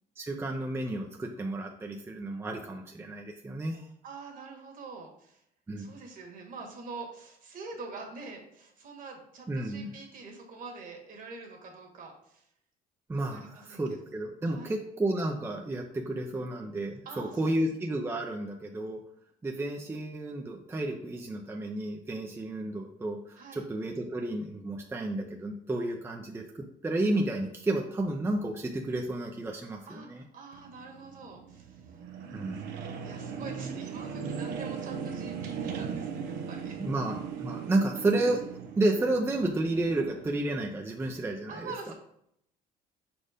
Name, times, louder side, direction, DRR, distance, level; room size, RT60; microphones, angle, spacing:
voice 1, 0.2-3.8 5.7-6.0 9.5-9.9 13.1-19.0 19.4-30.2 32.3-32.6 36.8-38.5 38.8-41.7, right 2 dB, 15° right, 1 dB, 0.6 m, -31 dB
voice 2, 4.0-5.4 5.8-12.5 13.3-13.8 14.4-14.8 17.0-17.6 23.4-23.7 29.9-32.0 32.6-36.8 41.5-41.9, right 4 dB, 55° right, 2 dB, 1.7 m, -45 dB
sound 1, 30.5-40.3, right 6 dB, 85° right, 0.8 m, -38 dB
4.9 x 4.3 x 5.0 m, 0.73 s
cardioid pair, 110°, 17 cm